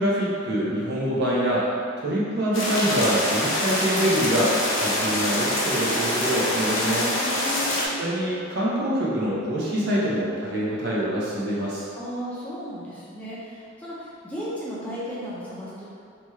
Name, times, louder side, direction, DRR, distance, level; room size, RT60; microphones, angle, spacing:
voice 1, 0.0-1.7 2.0-7.1 8.0-11.9, equal, 60° right, -7 dB, 0.7 m, -25 dB
sound 1, 2.5-7.9, left 1 dB, 85° left, 0.6 m, -25 dB
voice 2, 7.2-7.9 12.0-15.9, equal, 5° left, -9 dB, 0.4 m, -35 dB
2.9 x 2.3 x 3.0 m, 2.4 s
head